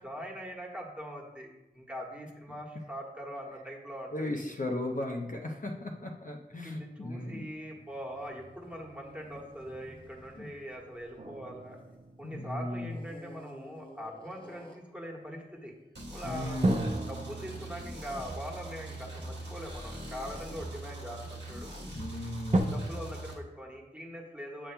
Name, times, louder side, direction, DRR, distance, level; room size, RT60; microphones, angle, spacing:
voice 1, 0.0-1.5 1.7-4.4 6.6-11.8 12.2-15.7 16.1-16.6 17.1-21.7 22.5-24.7, equal, 5° right, -2 dB, 1.4 m, -42 dB
voice 2, 4.1-7.4 10.4-10.5 12.2-13.0 16.2-17.0 21.9-22.8, left 1 dB, 50° left, 0 dB, 0.7 m, -36 dB
sound 1, 7.4-12.2 12.8-15.0, equal, 30° left, 1.1 m, -53 dB
sound 2, 11.2-13.7 16.6-20.0 20.7-20.8 22.5-22.6, right 2 dB, 40° right, 0.7 m, -34 dB
sound 3, 15.9-23.3, right 1 dB, 80° right, 1.2 m, -42 dB
7.4 x 6.8 x 2.2 m, 1.0 s
wide cardioid pair, 45°, 18 cm